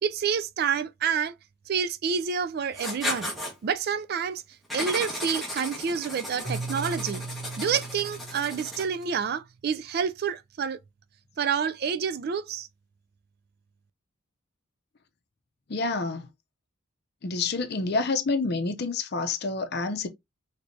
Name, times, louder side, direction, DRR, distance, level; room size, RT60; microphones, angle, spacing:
voice 1, 0.0-1.3 1.7-3.3 3.6-4.4 4.7-7.2 7.6-10.8 11.4-12.7, right 6 dB, 50° right, 0.3 m, -28 dB
Writing, 2.7-3.5 4.7-9.0, left 1 dB, ahead, 1.2 m, -35 dB
Keyboard (musical), 6.4-9.4, right 3 dB, 65° right, 1.1 m, -38 dB
voice 2, 15.7-16.3 17.2-20.1, left 3 dB, 50° left, 0.6 m, -28 dB
3.3 x 3.2 x 2.6 m
head